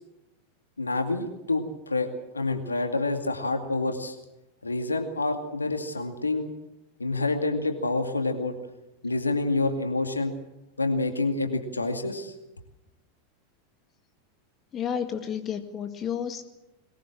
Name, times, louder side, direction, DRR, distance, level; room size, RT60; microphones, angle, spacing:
voice 1, 0.8-4.2 4.6-6.5 7.0-8.5 9.0-10.3 10.8-12.3, left 2 dB, 85° left, 6 dB, 2.3 m, -28 dB
voice 2, 14.7-16.4, left 8 dB, 30° left, 8 dB, 2.1 m, -31 dB
22.0 x 20.5 x 7.5 m, 0.91 s
figure-of-eight pair, 90°, 0 cm